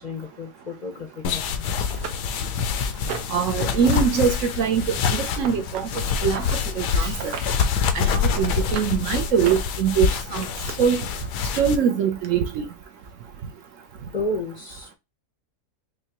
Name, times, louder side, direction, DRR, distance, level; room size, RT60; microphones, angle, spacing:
voice 1, 0.0-1.9 2.4-2.5 14.1-14.9, left 2 dB, 60° left, 0.4 m, -32 dB
sound 1, 1.2-11.8, left 6 dB, 90° left, 1.2 m, -26 dB
sound 2, 1.3-1.4 1.9-3.4 3.8-4.2 4.5-6.6 7.1-7.7 8.1-8.9 9.3-10.7 11.7-11.8 12.2-12.3, right 8 dB, 80° right, 1.3 m, -36 dB
voice 2, 3.3-5.9 6.2-6.5 6.8-7.3 7.9-10.5 10.8-11.0 11.5-12.7, right 7 dB, 65° right, 0.8 m, -23 dB
5.4 x 2.2 x 2.9 m
omnidirectional pair, 1.7 m